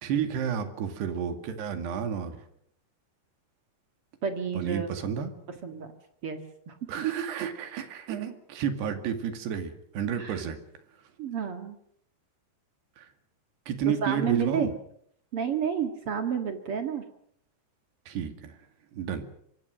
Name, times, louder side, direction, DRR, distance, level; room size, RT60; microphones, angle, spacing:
voice 1, 0.0-2.4 4.5-5.3 6.9-10.6 13.0-13.1 13.7-14.7 18.1-18.6 18.9-19.2, right 8 dB, 85° right, 8 dB, 4.3 m, -31 dB
voice 2, 4.2-4.9 5.6-5.9 6.2-6.8 10.2-10.5 11.2-11.8 13.9-14.7 15.3-17.0, right 7 dB, 45° right, 6 dB, 2.0 m, -30 dB
25.0 x 24.0 x 6.5 m, 0.69 s
omnidirectional pair, 4.7 m